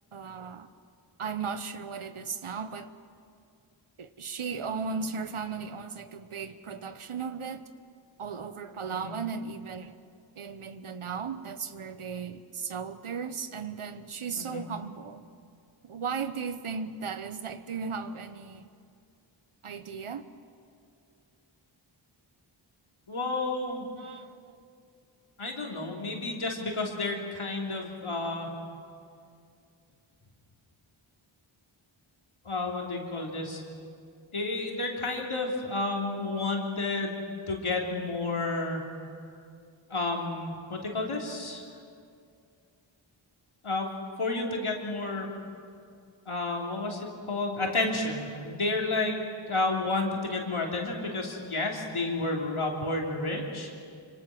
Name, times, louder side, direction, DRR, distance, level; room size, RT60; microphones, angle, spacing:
voice 1, 0.1-0.7 1.2-2.9 4.0-7.7 8.2-9.9 10.4-15.2 15.8-18.7 19.6-20.2 24.0-24.6 50.5-50.6, right 5 dB, 85° right, 11 dB, 1.1 m, -36 dB
voice 2, 23.1-23.9 25.4-28.5 32.4-33.6 34.3-37.2 37.5-38.8 39.9-41.6 43.6-43.9 44.2-45.3 46.3-49.2 49.5-53.7, left 2 dB, 80° left, -1 dB, 3.4 m, -31 dB
25.5 x 25.0 x 6.2 m, 2.4 s
wide cardioid pair, 40°, 49 cm